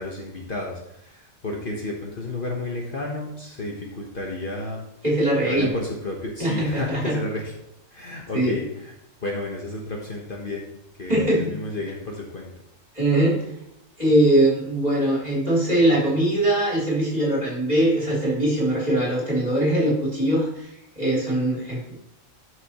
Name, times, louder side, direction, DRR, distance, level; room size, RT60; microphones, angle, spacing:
voice 1, 0.0-4.8 5.4-7.5 7.9-8.9 9.2-10.7 11.0-12.5, left 2 dB, 45° left, -1 dB, 1.3 m, -32 dB
voice 2, 5.0-5.7 6.4-7.1 8.3-8.6 11.1-11.5 13.0-13.4 14.0-20.7 21.0-22.0, right 1 dB, 30° right, -5 dB, 3.5 m, -21 dB
12.0 x 6.4 x 3.0 m, 0.84 s
omnidirectional pair, 1.4 m